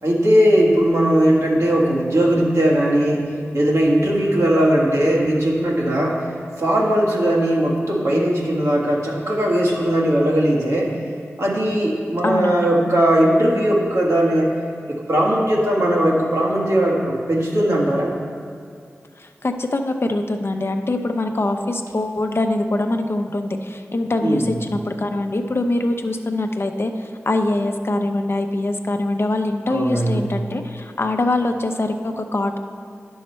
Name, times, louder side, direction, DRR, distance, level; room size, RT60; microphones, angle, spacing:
voice 1, 0.0-6.3 6.6-10.9 11.4-14.5 14.9-18.1 24.2-24.5 29.7-30.3, right 1 dB, 75° right, -3 dB, 1.5 m, -18 dB
voice 2, 12.2-12.7 19.2-32.6, left 2 dB, 50° left, 5 dB, 0.6 m, -23 dB
10.0 x 6.4 x 4.4 m, 2.2 s
cardioid pair, 40°, 5 cm